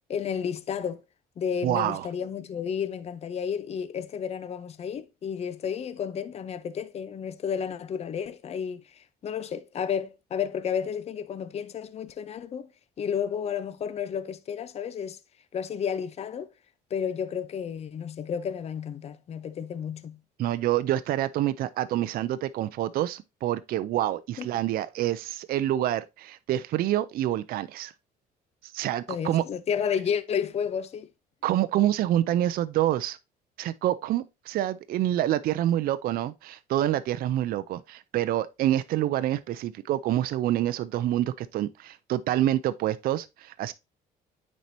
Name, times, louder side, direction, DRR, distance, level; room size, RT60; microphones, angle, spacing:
voice 1, 0.1-1.0 1.4-12.7 13.0-15.2 15.5-16.5 16.9-20.2 24.4-24.5 29.1-31.1, left 7 dB, 40° left, 0.6 m, -32 dB
voice 2, 1.6-2.1 20.4-27.9 28.6-29.4 31.4-33.2 33.6-43.7, right 13 dB, 60° right, 0.4 m, -27 dB
9.2 x 4.3 x 2.7 m
cardioid pair, 110°, 17 cm